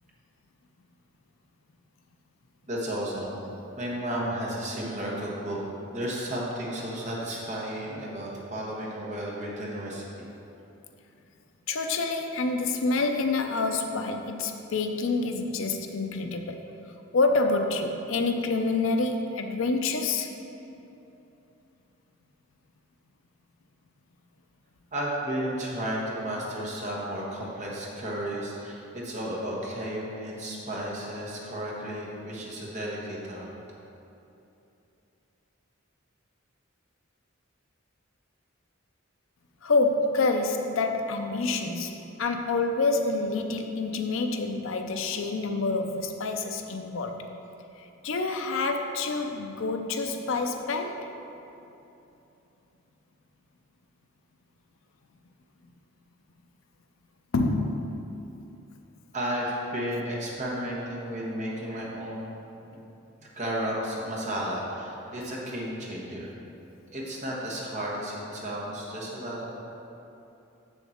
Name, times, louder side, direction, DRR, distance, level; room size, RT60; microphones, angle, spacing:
voice 1, 2.7-3.4 3.8-5.6 5.9-10.3 24.9-33.5 59.1-62.3 62.6-62.8 63.2-66.3 66.9-69.5, right 1 dB, 35° right, -4 dB, 1.3 m, -33 dB
voice 2, 11.7-16.6 17.1-20.3 39.6-47.3 47.8-51.1 57.3-57.9, left 3 dB, 70° left, 5 dB, 0.5 m, -27 dB
7.3 x 6.7 x 4.4 m, 2.9 s
head